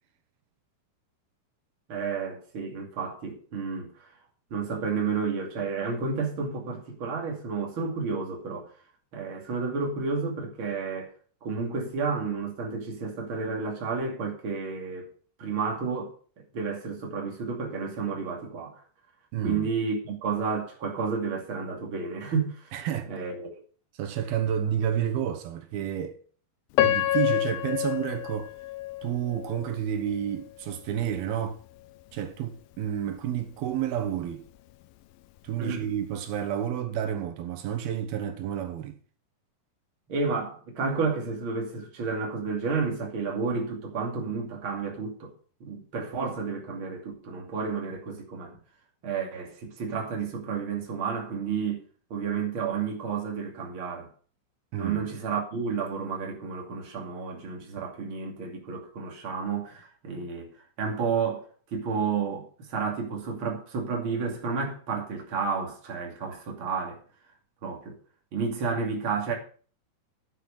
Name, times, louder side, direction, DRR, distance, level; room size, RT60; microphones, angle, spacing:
voice 1, 1.9-4.1 4.5-8.7 9.1-11.1 11.4-15.1 15.4-16.1 16.5-18.8 19.4-22.8 23.1-23.6 35.6-35.8 40.1-45.3 45.6-48.6 49.0-51.8 52.1-54.1 54.8-60.5 60.8-67.0 67.6-68.0 68.3-69.4, right 5 dB, 40° right, 3.0 m, -31 dB
voice 2, 19.3-19.7 22.7-23.1 24.0-26.2 26.8-28.5 29.0-31.6 32.1-34.4 35.4-39.0 54.7-55.0, right 9 dB, 90° right, 3.2 m, -30 dB
Piano, 26.8-29.8 30.3-30.4 31.1-31.3, left 14 dB, 80° left, 2.4 m, -27 dB
9.7 x 8.2 x 6.5 m
omnidirectional pair, 4.2 m